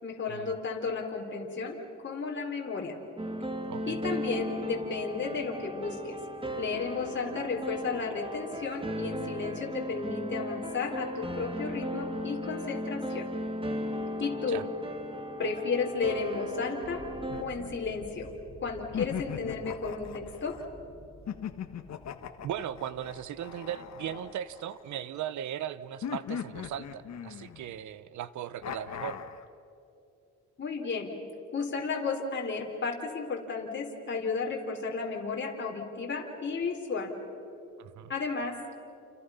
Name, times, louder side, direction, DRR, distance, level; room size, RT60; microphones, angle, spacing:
voice 1, 0.0-3.0 3.9-6.2 6.6-13.3 14.2-14.6 15.4-17.0 17.4-18.3 18.6-20.6 30.6-31.1 31.5-37.1 38.1-38.8, left 4 dB, 40° left, -1 dB, 3.8 m, -33 dB
sound 1, 3.2-17.4, equal, 15° right, 2.3 m, -36 dB
voice 2, 3.7-4.0 14.5-14.6 22.4-29.2 37.8-38.1, right 10 dB, 75° right, 16 dB, 1.0 m, -38 dB
sound 2, 16.8-24.6, right 1 dB, 35° right, 4.5 m, -51 dB
sound 3, 17.3-18.4 18.9-20.6 21.3-25.0 26.0-27.8 28.6-29.4, left 9 dB, 60° left, 1.5 m, -39 dB
29.5 x 29.0 x 5.7 m, 2.7 s
cardioid pair, 90°, 30 cm